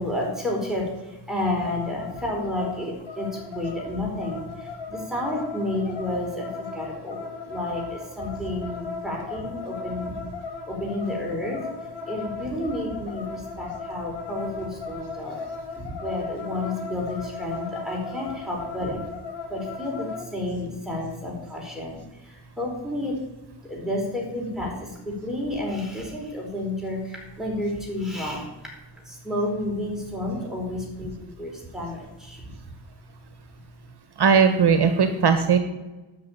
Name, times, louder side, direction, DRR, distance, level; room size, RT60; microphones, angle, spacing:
voice 1, 0.0-10.1 10.7-15.5 15.7-19.0 19.5-23.3 23.6-28.7 29.0-32.6 33.6-33.7, left 1 dB, ahead, -2 dB, 4.8 m, -31 dB
sound 1, 1.6-20.3, left 4 dB, 60° left, 2.5 m, -37 dB
voice 2, 34.2-35.6, right 6 dB, 50° right, 8 dB, 1.3 m, -18 dB
12.5 x 6.4 x 9.2 m, 1.1 s
wide cardioid pair, 130°, 49 cm